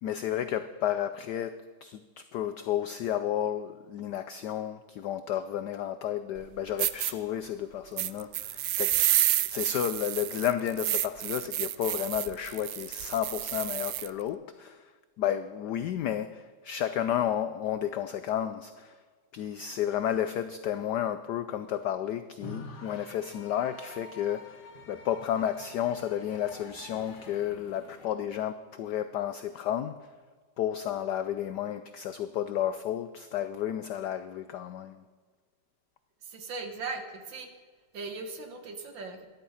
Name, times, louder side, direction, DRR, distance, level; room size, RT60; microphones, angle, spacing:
voice 1, 0.0-14.9 15.2-19.0 19.3-30.1 30.6-35.0, left 10 dB, 80° left, 11 dB, 0.9 m, -32 dB
sound 1, 6.4-6.5 6.8-7.1 8.0-14.1, right 14 dB, 80° right, 0.9 m, -29 dB
sound 2, 22.4-28.1, left 3 dB, 50° left, 1.9 m, -47 dB
voice 2, 36.2-37.5 37.9-39.3, right 4 dB, 60° right, 6 dB, 2.0 m, -38 dB
13.0 x 11.0 x 5.6 m, 1.5 s
omnidirectional pair, 2.4 m